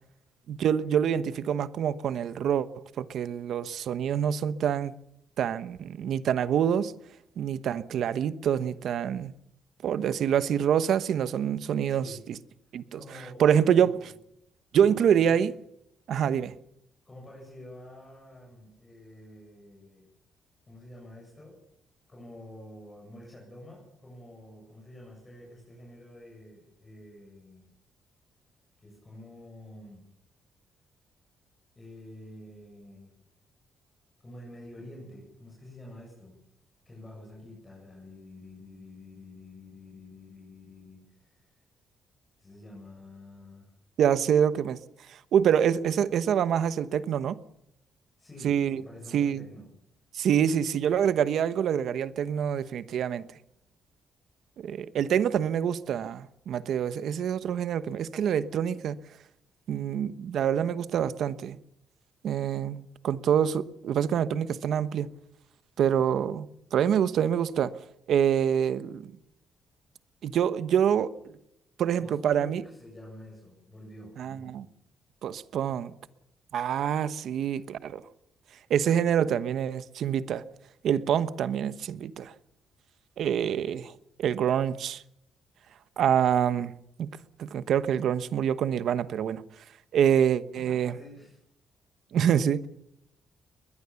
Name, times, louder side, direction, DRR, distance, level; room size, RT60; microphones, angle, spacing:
voice 1, 0.5-2.7 3.0-4.9 5.4-6.9 7.4-9.3 9.8-12.3 12.7-13.0 13.4-14.0 14.7-15.5 16.1-16.5 44.0-44.8 45.1-47.4 48.4-48.8 49.1-49.5 50.1-53.2 54.6-59.0 59.7-61.6 62.2-65.1 65.8-67.7 68.1-69.1 70.2-71.4 71.8-72.6 74.2-74.6 75.2-75.9 76.5-78.0 78.7-80.4 80.8-82.3 83.2-83.9 84.2-85.0 86.0-86.7 87.0-87.1 87.4-89.4 89.9-90.9 92.1-92.7, right 8 dB, 65° right, 1.1 m, -26 dB
voice 2, 11.9-12.2 13.0-14.0 14.8-15.4 17.1-20.1 20.7-21.5 22.1-27.6 28.8-30.0 31.8-33.1 34.2-36.3 36.9-41.6 42.4-43.7 48.2-49.7 72.0-74.6 90.6-91.4, left 1 dB, 20° left, 7.5 m, -48 dB
21.5 x 21.0 x 7.1 m
cardioid pair, 150°, 0 cm